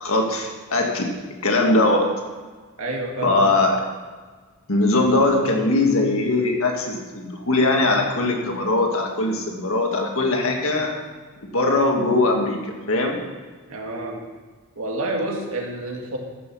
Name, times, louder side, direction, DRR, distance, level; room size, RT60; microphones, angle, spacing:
voice 1, 0.0-1.1 1.4-2.1 3.2-3.8 4.7-11.0 11.5-13.2, left 2 dB, 65° left, 2 dB, 1.8 m, -21 dB
voice 2, 2.8-3.5 13.7-14.3 14.8-16.2, right 2 dB, 70° right, 0 dB, 2.0 m, -29 dB
14.5 x 6.2 x 6.2 m, 1.4 s
head